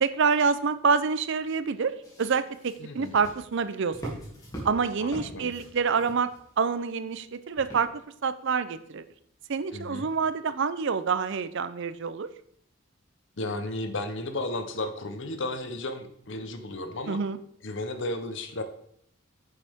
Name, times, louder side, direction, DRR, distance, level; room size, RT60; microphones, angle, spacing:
voice 1, 0.0-1.9 2.2-4.1 4.6-6.3 6.6-9.0 9.5-12.3 17.1-17.4, right 5 dB, 60° right, 14 dB, 0.5 m, -27 dB
sound 1, 2.0-6.7 7.6-8.2 8.8-8.9, right 1 dB, 15° left, 2.3 m, -42 dB
voice 2, 2.8-3.2 5.0-5.5 9.7-10.1 13.4-17.2 17.6-18.6, left 2 dB, 60° left, 8 dB, 0.9 m, -34 dB
9.6 x 6.9 x 3.6 m, 0.69 s
head